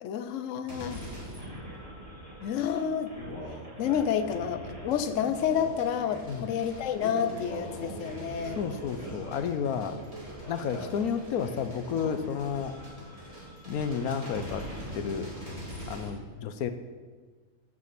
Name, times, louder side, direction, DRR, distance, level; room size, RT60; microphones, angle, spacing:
voice 1, 0.0-1.0 2.4-3.1 3.8-8.6, left 8 dB, 65° left, 9 dB, 1.0 m, -29 dB
sound 1, 0.7-16.1, equal, 25° right, 3.3 m, -41 dB
voice 2, 8.6-10.0 10.5-12.7 13.7-14.6 14.9-15.3 15.9-16.7, left 7 dB, 80° left, 9 dB, 1.2 m, -31 dB
15.5 x 6.2 x 5.9 m, 1.4 s
omnidirectional pair, 1.6 m